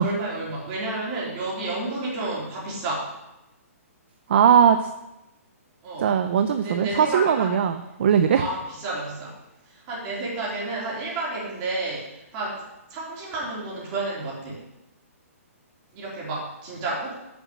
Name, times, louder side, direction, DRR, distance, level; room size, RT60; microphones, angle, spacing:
voice 1, 0.0-3.1 5.8-6.1 6.6-7.6 8.4-9.3 9.7-12.5 12.9-14.6 15.9-17.2, right 2 dB, 25° right, -5 dB, 3.5 m, -31 dB
voice 2, 4.3-4.9 6.0-8.4, right 8 dB, 45° right, 9 dB, 0.6 m, -19 dB
8.0 x 7.0 x 7.5 m, 0.93 s
hypercardioid pair, 170°, 8 cm